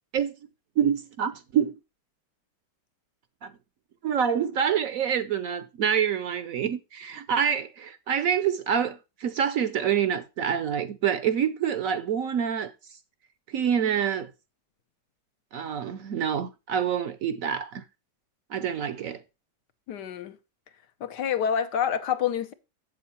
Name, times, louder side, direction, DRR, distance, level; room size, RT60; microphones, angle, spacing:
voice 1, 0.8-1.8 3.4-3.5 4.0-12.7 13.5-14.3 15.5-17.8 18.5-19.2, right 8 dB, 65° right, 0.9 m, -26 dB
voice 2, 19.9-20.4 21.0-22.5, left 8 dB, 75° left, 1.5 m, -27 dB
7.5 x 7.4 x 4.3 m
omnidirectional pair, 1.9 m